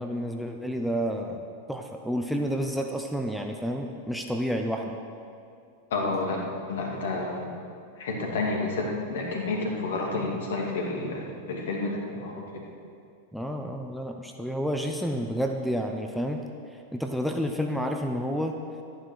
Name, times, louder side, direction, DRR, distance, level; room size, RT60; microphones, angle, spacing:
voice 1, 0.0-1.4 1.7-5.0 13.3-16.4 16.9-18.6, equal, ahead, 3 dB, 0.8 m, -30 dB
voice 2, 5.9-6.4 6.7-7.5 8.0-12.3, left 3 dB, 60° left, -1 dB, 2.7 m, -30 dB
12.5 x 10.0 x 6.3 m, 2.4 s
figure-of-eight pair, 90°, 0 cm